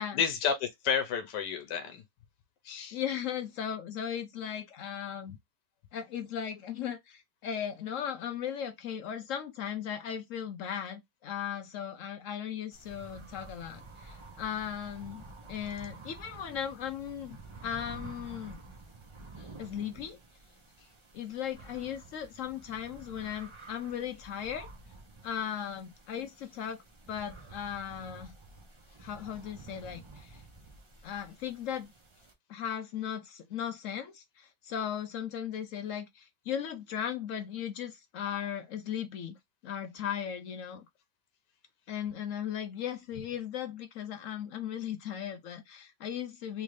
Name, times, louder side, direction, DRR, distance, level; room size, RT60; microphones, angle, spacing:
voice 1, 0.0-2.0 2.6-3.0 19.4-19.5, left 7 dB, 85° left, 1.3 m, -31 dB
voice 2, 2.9-5.4 5.9-17.4 17.6-18.6 19.6-20.2 21.1-24.7 25.2-26.8 27.1-28.3 29.0-30.4 31.0-31.9 32.5-39.4 39.6-40.9 41.9-46.6, left 9 dB, 70° left, 0.7 m, -37 dB
sound 1, 12.7-32.3, right 3 dB, 40° right, 0.4 m, -50 dB
3.5 x 2.5 x 3.2 m
omnidirectional pair, 1.8 m